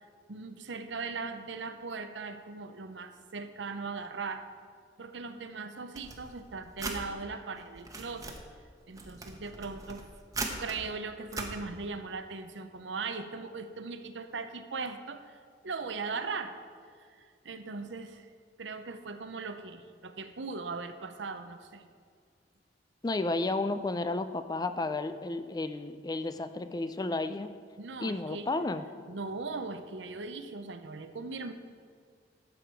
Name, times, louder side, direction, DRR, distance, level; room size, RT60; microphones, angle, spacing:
voice 1, 0.3-4.5 5.0-8.3 8.9-10.1 10.6-16.5 17.0-18.3 18.6-21.8 27.8-28.5 29.1-31.5, right 4 dB, 85° right, 9 dB, 0.8 m, -39 dB
sound 1, 5.9-7.0 7.6-8.4 8.9-10.8 11.3-11.5, right 3 dB, 20° right, 1.0 m, -39 dB
voice 2, 23.0-27.5 28.0-29.0, left 2 dB, 20° left, 11 dB, 0.4 m, -32 dB
12.5 x 8.0 x 4.6 m, 2.1 s
head